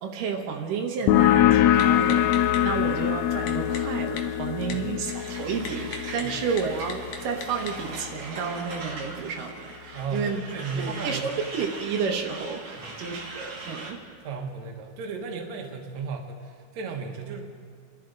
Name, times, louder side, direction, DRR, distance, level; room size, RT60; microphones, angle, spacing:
voice 1, 0.0-10.4 10.8-14.2, right 6 dB, 85° right, 2 dB, 2.8 m, -31 dB
sound 1, 1.1-8.3, left 12 dB, 80° left, 1.6 m, -24 dB
Typing, 1.7-7.9, left 5 dB, 60° left, 1.9 m, -42 dB
Truck, 5.0-13.9, right 3 dB, 45° right, 2.1 m, -40 dB
voice 2, 9.9-11.3 12.8-13.0 14.2-17.4, right 4 dB, 65° right, 2 dB, 2.5 m, -35 dB
28.0 x 11.5 x 3.9 m, 2.1 s
omnidirectional pair, 3.7 m